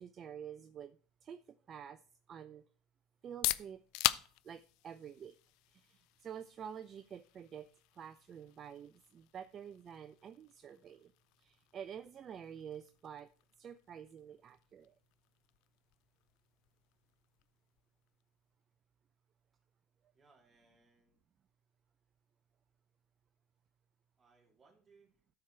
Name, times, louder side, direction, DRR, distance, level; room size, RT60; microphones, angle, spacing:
voice 1, 0.0-2.0 2.3-2.6 3.2-3.8 4.4-5.3 5.7-7.7 8.0-11.1 11.4-13.3 13.6-14.9, right 8 dB, 40° right, 12 dB, 0.4 m, -49 dB
sound 1, 3.1-18.8, left 18 dB, 65° left, 0.4 m, -44 dB
voice 2, 20.1-21.2 24.2-25.2, right 4 dB, 15° right, -3 dB, 3.6 m, -68 dB
13.0 x 4.6 x 4.5 m, 0.41 s
supercardioid pair, 105°, 0 cm